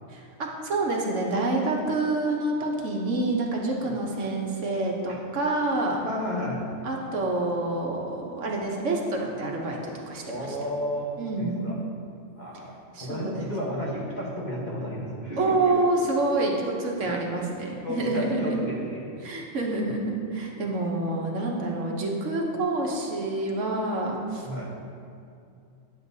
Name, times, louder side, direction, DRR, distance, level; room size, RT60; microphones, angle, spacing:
voice 1, 0.1-6.0 6.8-10.6 11.2-11.5 12.9-13.5 15.4-18.5 19.2-24.5, right 2 dB, 65° right, -1 dB, 1.2 m, -27 dB
voice 2, 6.0-6.6 10.2-11.8 12.4-12.7 13.0-15.8 17.8-19.0 19.3-19.5 19.8-19.9 24.4-24.7, equal, 35° left, -5 dB, 1.2 m, -32 dB
9.5 x 7.6 x 2.7 m, 2.5 s
omnidirectional pair, 1.4 m